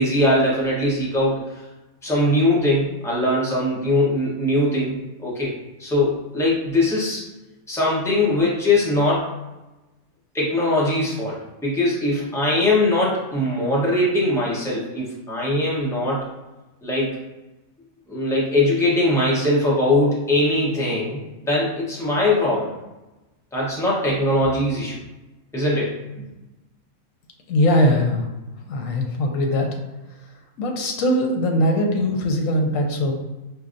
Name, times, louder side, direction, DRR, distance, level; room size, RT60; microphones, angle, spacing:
voice 1, 0.0-1.6 2.0-5.0 5.2-5.5 5.8-7.2 7.7-9.3 10.3-16.3 16.8-17.1 18.1-21.2 21.5-22.7 23.5-25.0 25.5-25.9, left 1 dB, 5° left, -6 dB, 0.7 m, -21 dB
voice 2, 27.5-28.3 28.7-29.7 30.6-33.1, left 1 dB, 85° left, 2 dB, 1.1 m, -20 dB
4.6 x 2.7 x 2.5 m, 1.0 s
omnidirectional pair, 1.4 m